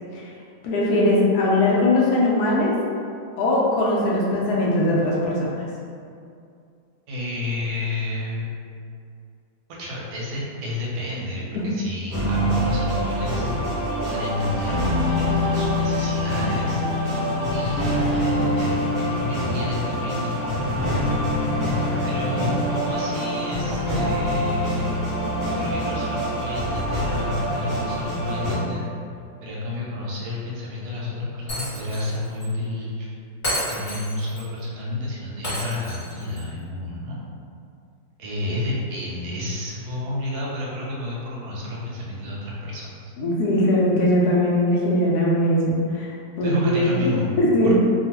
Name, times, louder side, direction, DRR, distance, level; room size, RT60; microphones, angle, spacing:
voice 1, 0.6-2.7 3.4-5.5 11.5-11.6 21.7-22.1 43.2-46.1 46.4-47.1 47.4-47.7, left 1 dB, 70° left, -5 dB, 1.0 m, -20 dB
voice 2, 7.1-8.5 9.8-13.8 14.0-16.8 17.5-20.5 22.0-25.0 25.5-28.9 29.4-33.1 33.7-37.2 38.2-43.1 46.4-47.3 47.6-47.7, left 1 dB, 65° right, -5 dB, 1.0 m, -31 dB
sound 1, 12.1-28.5, left 1 dB, 20° right, 0.6 m, -24 dB
Shatter, 31.5-32.1 32.4-32.5 33.4-34.4 35.4-36.4, equal, 30° left, 1.3 m, -30 dB
2.9 x 2.4 x 2.9 m, 2.4 s
omnidirectional pair, 2.0 m